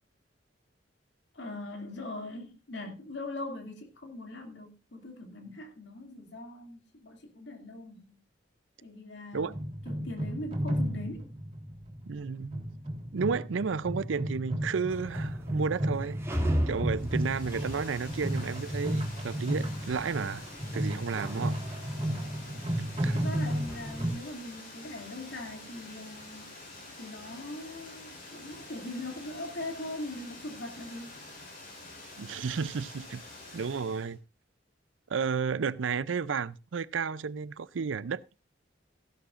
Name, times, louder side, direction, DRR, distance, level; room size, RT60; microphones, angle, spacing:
voice 1, 1.3-8.2 8.8-9.6 9.8-11.3 23.1-26.5 27.0-31.2, left 2 dB, 65° left, 2.5 m, -41 dB
sound 1, 9.4-24.1, equal, 30° right, 3.5 m, -33 dB
voice 2, 12.1-12.6 13.1-20.4 20.7-21.6 23.0-23.2 32.2-33.2 33.5-34.2 35.1-38.4, right 5 dB, 85° right, 0.5 m, -32 dB
sound 2, 14.9-24.3, equal, 15° right, 2.4 m, -38 dB
Water, 16.9-34.1, left 2 dB, 50° left, 5.3 m, -47 dB
15.5 x 11.5 x 2.5 m
head